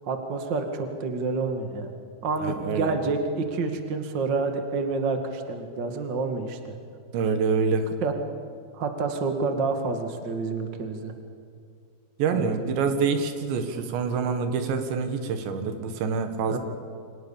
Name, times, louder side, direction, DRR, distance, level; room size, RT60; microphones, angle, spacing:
voice 1, 0.1-1.9 2.2-6.7 8.0-8.1 8.7-11.1 12.3-12.7 16.5-16.6, right 4 dB, 40° right, 5 dB, 1.7 m, -28 dB
voice 2, 2.4-2.9 7.1-7.9 12.2-16.6, right 5 dB, 80° right, 7 dB, 4.0 m, -26 dB
29.0 x 25.0 x 7.3 m, 2.3 s
omnidirectional pair, 5.1 m